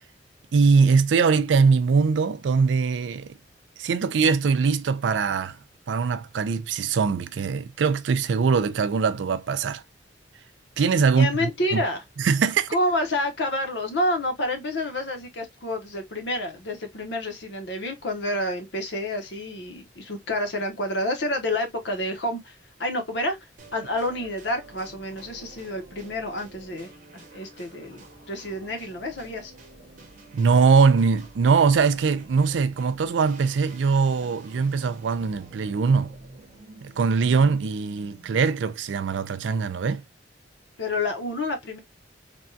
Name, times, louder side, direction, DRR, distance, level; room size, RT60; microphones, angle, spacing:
voice 1, 0.5-3.3 3.8-5.6 5.9-9.8 10.8-11.8 12.2-12.7 30.3-36.1 36.8-40.0, right 5 dB, 85° right, 0.4 m, -22 dB
voice 2, 11.1-12.0 12.7-29.5 40.8-41.8, left 1 dB, 70° left, 0.9 m, -29 dB
sound 1, 23.6-38.7, right 2 dB, 45° right, 0.8 m, -48 dB
3.4 x 2.2 x 2.6 m
head